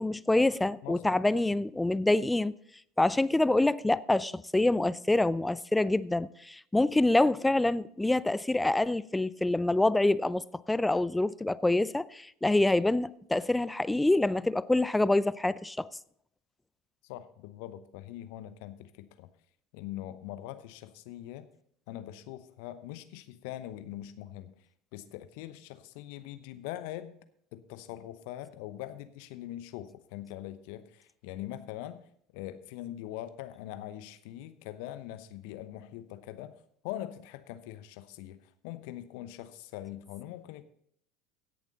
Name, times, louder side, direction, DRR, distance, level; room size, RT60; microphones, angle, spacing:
voice 1, 0.0-2.5 3.0-15.9, left 2 dB, 10° left, 0.4 m, -26 dB
voice 2, 0.8-1.3 17.0-19.3 19.7-21.5 21.9-24.5 24.9-27.2 27.5-32.1 32.3-40.6, left 13 dB, 60° left, 0.9 m, -42 dB
17.0 x 7.0 x 4.0 m
figure-of-eight pair, 75°, 0 cm